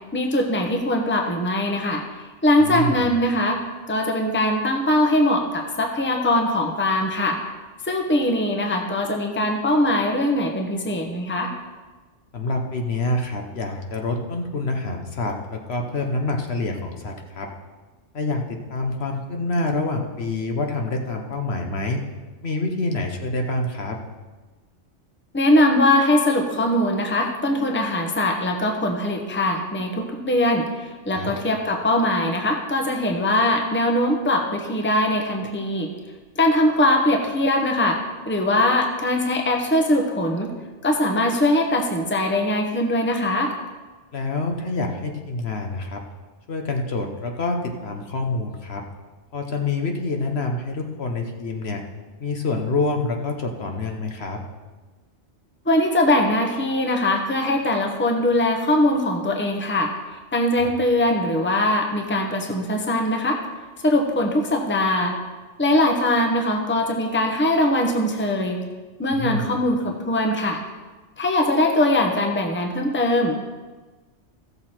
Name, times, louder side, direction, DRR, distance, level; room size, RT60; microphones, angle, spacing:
voice 1, 0.1-2.0 2.4-3.6 3.9-7.4 7.8-11.5 25.3-35.9 36.4-40.5 40.8-43.5 55.7-59.9 60.3-63.4 63.8-65.2 65.6-68.6 69.0-70.6 71.2-73.4, left 1 dB, 10° left, 2 dB, 0.9 m, -21 dB
voice 2, 2.6-3.1 12.3-17.5 18.1-22.0 22.4-24.0 31.1-31.3 44.1-46.0 46.5-48.8 49.3-51.8 52.2-54.4 60.5-60.7 69.1-69.5, left 2 dB, 60° left, 3 dB, 1.3 m, -27 dB
15.0 x 6.8 x 4.4 m, 1.3 s
omnidirectional pair, 1.2 m